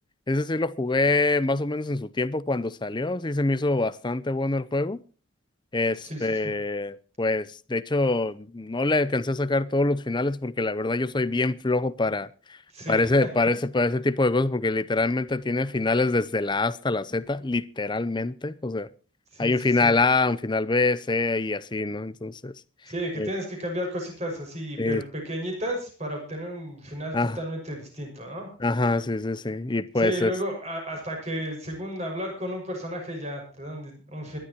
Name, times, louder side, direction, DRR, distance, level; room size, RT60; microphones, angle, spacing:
voice 1, 0.3-5.0 5.7-12.6 12.9-18.9 19.4-22.5 23.2-23.3 24.8-25.0 27.1-27.4 28.6-30.3, left 2 dB, 20° left, 0.6 m, -25 dB
voice 2, 6.0-6.5 12.7-13.3 19.3-19.9 22.9-28.5 30.0-34.4, equal, 30° right, 5.9 m, -33 dB
25.5 x 11.5 x 3.0 m
head